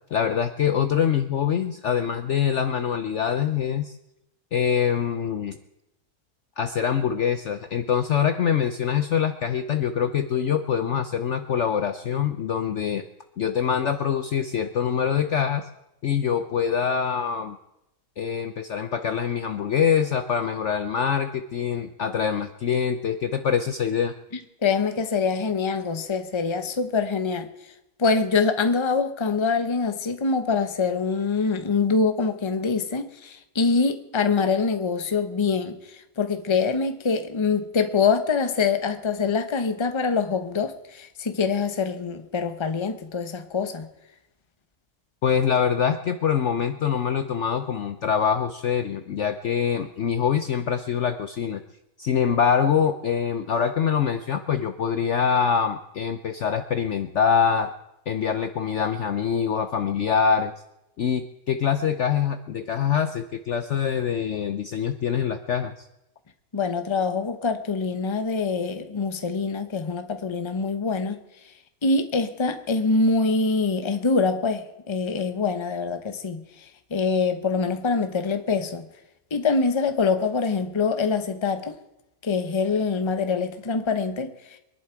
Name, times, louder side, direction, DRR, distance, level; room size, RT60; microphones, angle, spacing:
voice 1, 0.1-4.0 4.5-5.6 6.6-13.0 13.4-15.7 16.0-17.6 18.2-24.1 45.2-51.6 52.0-57.7 58.1-60.5 61.0-65.9, left 7 dB, 60° left, 0.8 m, -24 dB
voice 2, 24.6-27.5 28.0-43.9 66.5-71.2 71.8-76.4 76.9-78.9 79.3-81.7 82.2-84.3, left 4 dB, 25° left, 0.8 m, -24 dB
23.5 x 11.0 x 4.6 m
omnidirectional pair, 1.7 m